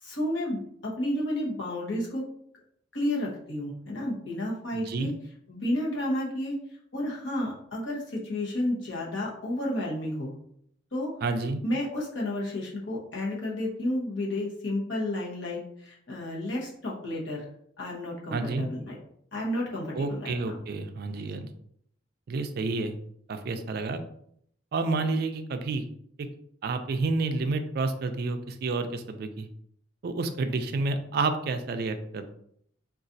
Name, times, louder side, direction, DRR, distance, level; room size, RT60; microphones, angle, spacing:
voice 1, 0.0-2.2 2.9-5.1 5.5-6.6 6.9-10.3 10.9-11.1 11.6-17.5 17.8-19.0 19.3-20.6, left 1 dB, 65° left, -3 dB, 1.0 m, -31 dB
voice 2, 4.7-5.1 11.2-11.6 18.3-18.7 19.9-21.5 22.3-22.9 23.3-24.0 24.7-25.8 26.6-29.5 30.0-32.3, right 3 dB, 50° right, 8 dB, 0.3 m, -29 dB
3.9 x 2.4 x 2.6 m, 0.68 s
head